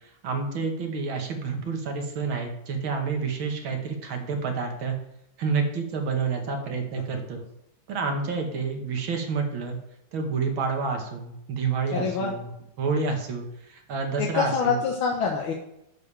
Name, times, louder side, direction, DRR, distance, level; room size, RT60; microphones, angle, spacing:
voice 1, 0.2-5.0 5.4-7.4 7.9-9.8 10.1-12.5 12.8-14.8, right 4 dB, 80° right, 3 dB, 2.2 m, -29 dB
voice 2, 11.9-12.3 14.2-15.5, left 6 dB, 90° left, 0 dB, 1.9 m, -26 dB
11.5 x 7.0 x 3.4 m, 0.81 s
omnidirectional pair, 2.2 m